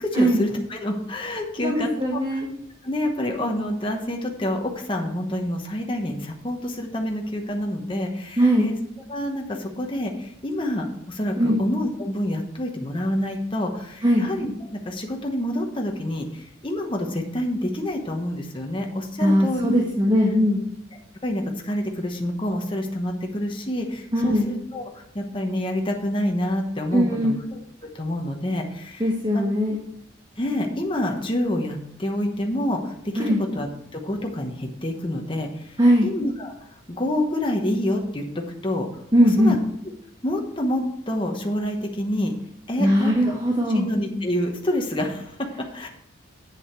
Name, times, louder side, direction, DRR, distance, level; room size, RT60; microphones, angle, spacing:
voice 1, 0.0-1.9 2.3-2.4 2.8-8.8 9.1-19.9 21.2-27.6 27.9-29.1 29.7-29.8 30.4-38.9 39.2-39.6 40.2-42.3 42.7-43.3 43.7-45.9, left 1 dB, 25° left, 2 dB, 1.0 m, -27 dB
voice 2, 1.6-2.5 8.4-8.7 11.4-11.6 14.0-14.2 19.2-20.6 24.1-24.5 26.9-27.4 29.0-29.8 33.1-33.4 35.8-36.1 39.1-39.5 42.8-43.9, equal, 20° right, -1 dB, 1.2 m, -20 dB
8.5 x 7.2 x 4.6 m, 0.74 s
head